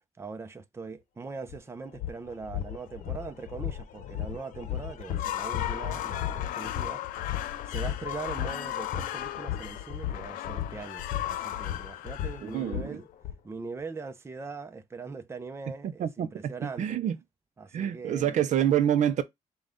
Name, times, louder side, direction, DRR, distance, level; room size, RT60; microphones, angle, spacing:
voice 1, 0.2-7.0 7.6-13.1 13.4-17.0 17.6-18.4, right 4 dB, 20° right, 0.6 m, -41 dB
sound 1, 1.5-1.6 1.9-13.3, left 11 dB, 70° left, 0.8 m, -36 dB
sound 2, 5.0-13.1, left 13 dB, 90° left, 0.4 m, -36 dB
voice 2, 12.4-13.0 15.8-17.2 17.7-19.2, right 10 dB, 60° right, 0.6 m, -27 dB
5.2 x 2.4 x 3.7 m
cardioid pair, 110°, 14 cm